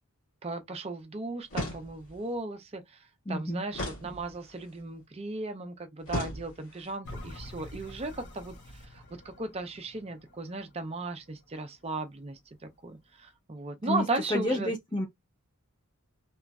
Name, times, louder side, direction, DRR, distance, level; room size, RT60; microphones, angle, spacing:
voice 1, 0.4-2.8 3.3-8.5 8.9-12.4 12.8-14.7, right 2 dB, 25° right, 0.5 m, -36 dB
sound 1, 1.5-2.2 3.7-4.7 6.1-6.9, left 1 dB, 85° left, 1.5 m, -37 dB
voice 2, 3.3-3.6 13.8-14.0 14.3-15.0, left 1 dB, 20° left, 0.8 m, -29 dB
sound 2, 7.0-12.1 12.6-12.7, left 1 dB, 50° left, 1.2 m, -47 dB
2.9 x 2.5 x 2.2 m
head